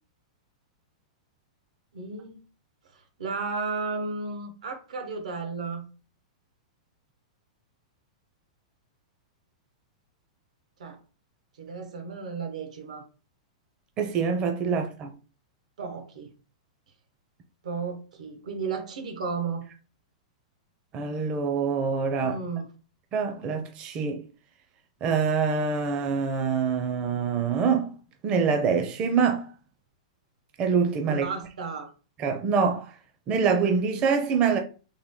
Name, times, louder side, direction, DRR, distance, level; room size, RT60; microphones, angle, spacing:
voice 1, 1.9-2.4 3.2-5.9 10.8-11.0 11.6-13.0 15.8-16.3 17.6-19.7 22.2-22.7 31.1-31.9, right 4 dB, 85° right, 1.1 m, -33 dB
voice 2, 14.0-15.1 20.9-22.4 23.1-24.2 25.0-27.9 28.2-29.5 30.6-31.3 32.2-32.9 33.3-34.6, right 5 dB, 30° right, 0.5 m, -25 dB
3.5 x 2.2 x 3.7 m
hypercardioid pair, 145°, 4 cm